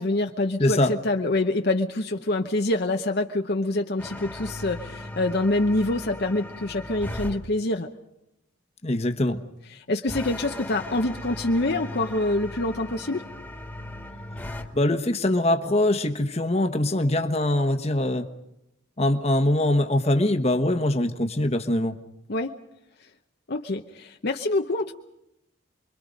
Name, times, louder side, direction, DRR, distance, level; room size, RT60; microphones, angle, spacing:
voice 1, 0.0-7.9 9.7-13.2 22.3-22.6 23.5-24.9, left 2 dB, 50° left, 4 dB, 0.9 m, -26 dB
voice 2, 0.6-0.9 8.8-9.4 14.7-18.3 19.0-22.0, left 1 dB, 30° left, 7 dB, 1.2 m, -23 dB
sound 1, 4.0-7.4 10.1-14.7, left 1 dB, 5° left, 1.8 m, -37 dB
29.0 x 23.0 x 5.2 m, 0.87 s
head